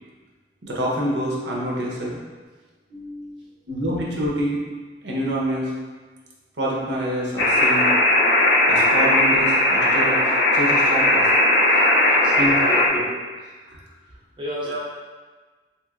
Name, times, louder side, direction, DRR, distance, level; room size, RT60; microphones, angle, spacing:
voice 1, 0.6-2.2 2.9-4.6 5.0-5.7 6.6-7.8 8.7-11.3 12.0-12.1 12.4-13.1 13.7-13.8 14.6-14.8, equal, 90° right, -3 dB, 0.7 m, -27 dB
sound 1, 7.4-12.9, left 1 dB, 70° left, 0.5 m, -18 dB
voice 2, 11.7-12.8 14.4-14.8, equal, 25° right, -5 dB, 0.4 m, -34 dB
3.1 x 2.9 x 2.4 m, 1.4 s
head